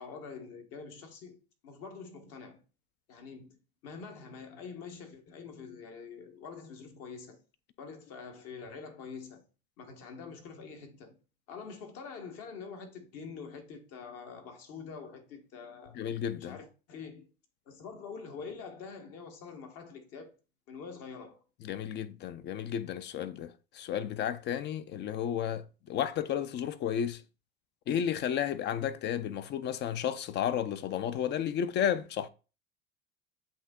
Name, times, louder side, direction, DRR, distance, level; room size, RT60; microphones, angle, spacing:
voice 1, 0.0-2.6 3.1-7.4 7.8-9.4 9.8-11.2 11.5-16.0 16.3-17.3 17.7-20.3 20.7-21.4, left 5 dB, 55° left, 1.3 m, -45 dB
voice 2, 15.9-16.6 21.6-27.2 27.9-32.3, left 9 dB, 35° left, 0.4 m, -32 dB
7.9 x 2.7 x 2.3 m
hypercardioid pair, 90°, 29 cm